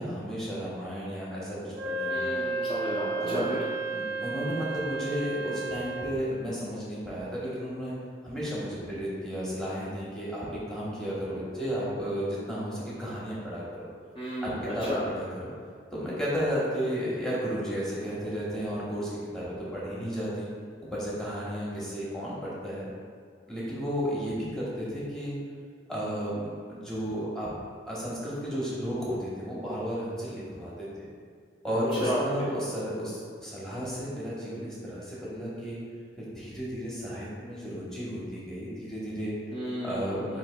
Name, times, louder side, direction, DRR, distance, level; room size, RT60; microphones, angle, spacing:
voice 1, 0.0-2.3 3.2-3.5 3.9-8.0 8.2-13.6 14.4-15.5 15.9-20.5 20.9-22.9 23.5-25.4 25.9-27.5 27.9-30.9 31.6-35.8 36.1-39.3 39.8-40.4, equal, 5° left, -8 dB, 1.0 m, -33 dB
Wind instrument woodwind instrument, 1.7-6.2, right 3 dB, 60° right, 0.4 m, -32 dB
voice 2, 2.1-3.6 14.2-15.0 32.0-32.2 39.5-40.4, equal, 30° left, -8 dB, 0.5 m, -33 dB
8.1 x 2.7 x 2.2 m, 2.1 s
head